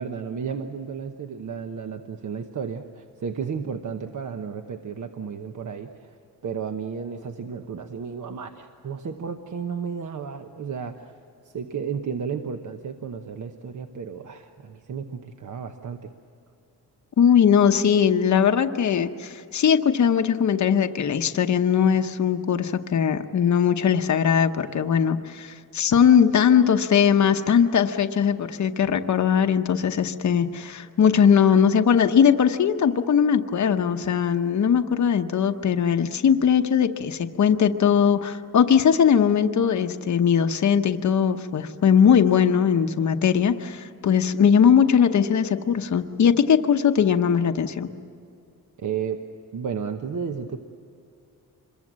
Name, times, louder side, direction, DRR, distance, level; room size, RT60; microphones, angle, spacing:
voice 1, 0.0-6.2 6.4-11.2 11.4-16.1 48.8-49.2 49.5-50.6, right 6 dB, 50° right, 6 dB, 1.1 m, -33 dB
voice 2, 17.2-47.9, left 7 dB, 50° left, 7 dB, 0.9 m, -20 dB
26.0 x 22.5 x 7.5 m, 2.6 s
wide cardioid pair, 145°, 37 cm